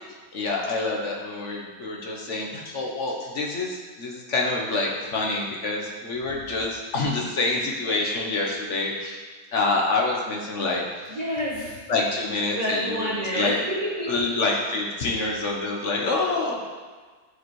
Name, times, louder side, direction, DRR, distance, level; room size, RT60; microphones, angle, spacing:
voice 1, 0.3-9.2 9.5-10.8 11.9-13.7 14.1-16.6, left 3 dB, 50° left, -1 dB, 1.2 m, -27 dB
voice 2, 11.1-11.8 12.5-14.3, equal, 25° right, -7 dB, 1.2 m, -28 dB
11.0 x 4.9 x 3.2 m, 1.4 s
omnidirectional pair, 1.7 m